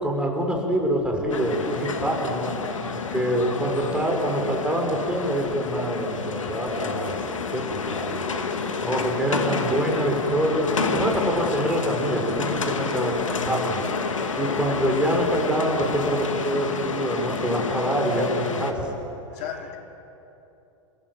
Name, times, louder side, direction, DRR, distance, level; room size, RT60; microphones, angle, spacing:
voice 1, 0.0-2.5 3.1-7.2 7.5-8.3 8.8-13.2 13.5-13.8 14.4-18.9 19.4-19.5, right 1 dB, 5° right, 1 dB, 5.6 m, -25 dB
sound 1, 1.3-18.7, left 5 dB, 85° left, 2.0 m, -29 dB
voice 2, 8.5-9.3 13.3-13.6 19.3-19.8, left 8 dB, 50° left, 3 dB, 2.9 m, -39 dB
30.0 x 16.0 x 7.9 m, 2.9 s
hypercardioid pair, 100°, 16 cm